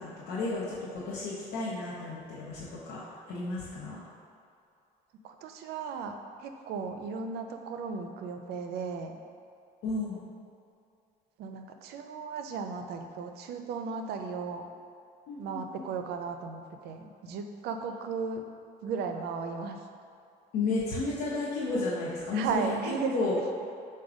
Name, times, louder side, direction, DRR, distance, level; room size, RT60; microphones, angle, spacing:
voice 1, 0.0-3.0 3.3-4.0 9.8-10.2 15.3-15.9 20.5-22.7 23.1-23.3, left 3 dB, 85° left, -8 dB, 0.7 m, -33 dB
voice 2, 5.2-6.1 6.4-9.2 11.4-14.7 15.4-18.5 18.8-19.8 22.3-23.2, right 5 dB, 75° right, 6 dB, 0.4 m, -35 dB
4.9 x 2.2 x 4.8 m, 2.4 s
cardioid pair, 110°, 17 cm